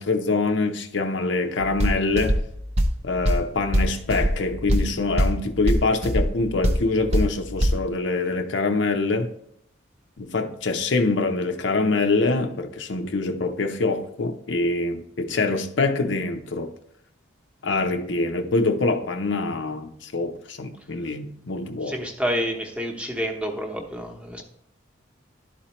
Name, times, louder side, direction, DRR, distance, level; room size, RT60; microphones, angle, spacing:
voice 1, 0.0-2.4 3.0-9.3 10.2-16.7 17.6-22.0, left 3 dB, 65° left, 0.6 m, -25 dB
sound 1, 1.6-7.8, equal, 30° right, 0.6 m, -24 dB
voice 2, 21.8-24.4, equal, 5° right, 0.9 m, -28 dB
11.5 x 4.3 x 3.0 m
head